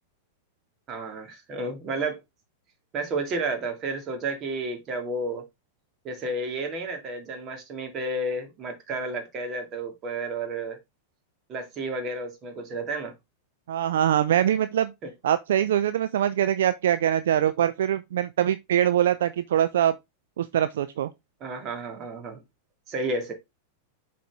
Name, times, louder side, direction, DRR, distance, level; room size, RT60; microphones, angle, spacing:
voice 1, 0.9-2.2 2.9-5.4 6.0-10.8 11.5-13.1 15.0-15.1 21.4-22.4 22.9-23.3, right 2 dB, 35° right, 2.3 m, -31 dB
voice 2, 13.7-14.9 15.2-20.0 20.4-21.1, right 10 dB, 70° right, 0.4 m, -23 dB
7.4 x 4.2 x 3.5 m
hypercardioid pair, 95°, 0 cm